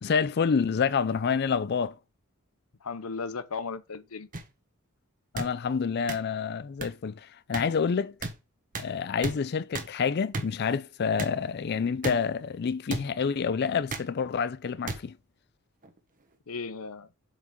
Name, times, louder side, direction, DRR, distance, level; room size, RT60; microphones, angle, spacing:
voice 1, 0.0-2.0 5.3-8.2 8.8-15.2, left 6 dB, 45° left, 0.4 m, -28 dB
voice 2, 2.8-4.3 16.5-17.1, left 4 dB, 75° left, 0.8 m, -36 dB
sound 1, 4.3-4.4 5.3-5.5 6.1-6.2 6.8-6.9 7.5-7.6 8.2-8.3 8.7-8.9 9.2-9.3 9.7-9.9 10.3-10.5 11.2-11.3 12.0-12.1 12.9-13.0 13.9-14.1 14.9-15.0 15.8-16.0, right 3 dB, 35° right, 1.2 m, -33 dB
7.3 x 5.0 x 5.1 m
head